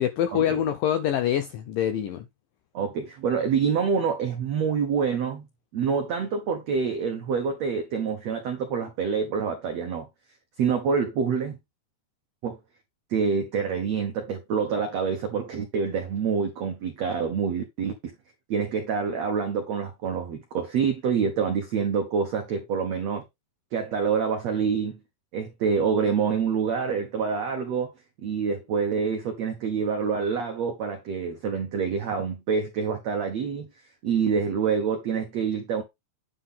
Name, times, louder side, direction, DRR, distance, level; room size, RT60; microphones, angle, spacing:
voice 1, 0.0-2.3, left 10 dB, 85° left, 1.9 m, -25 dB
voice 2, 2.7-5.4 5.7-10.1 10.6-11.6 12.4-12.6 13.1-18.1 18.5-23.2 23.7-25.0 25.3-27.9 28.2-33.7 34.0-35.8, right 6 dB, 85° right, 1.4 m, -26 dB
9.9 x 3.8 x 5.7 m
omnidirectional pair, 4.9 m